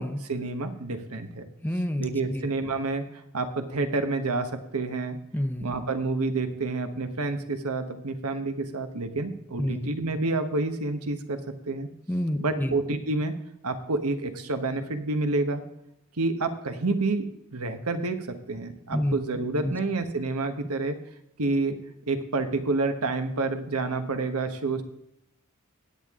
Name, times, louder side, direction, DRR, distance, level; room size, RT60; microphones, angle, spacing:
voice 1, 0.0-1.5 2.0-3.0 3.3-5.2 5.6-11.4 11.7-11.9 12.4-13.3 13.6-15.6 16.2-21.0 21.4-21.8 22.1-24.8, right 3 dB, 85° right, 8 dB, 1.3 m, -29 dB
voice 2, 1.6-2.5 5.3-5.7 9.6-9.9 12.1-12.8 18.9-19.2 19.6-19.8, equal, 10° left, 8 dB, 0.7 m, -29 dB
17.0 x 8.7 x 3.7 m, 0.80 s
head